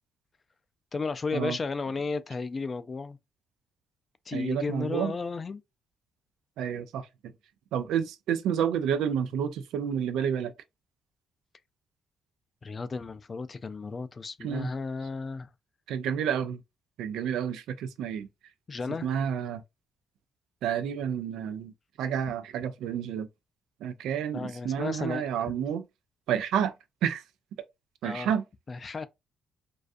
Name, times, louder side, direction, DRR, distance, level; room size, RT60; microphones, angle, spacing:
voice 1, 0.9-3.2 4.3-5.6 12.6-15.5 18.7-19.1 24.3-25.5 28.0-28.3 28.7-29.1, left 4 dB, 35° left, 0.3 m, -34 dB
voice 2, 4.3-5.1 6.6-7.1 7.7-10.5 14.4-14.7 15.9-16.6 17.0-18.3 19.0-19.6 20.6-21.7 22.0-23.3 23.8-25.8 26.3-26.7 27.0-27.2 28.0-28.4, right 8 dB, 85° right, 0.3 m, -29 dB
2.4 x 2.3 x 2.5 m
cardioid pair, 90°, 0 cm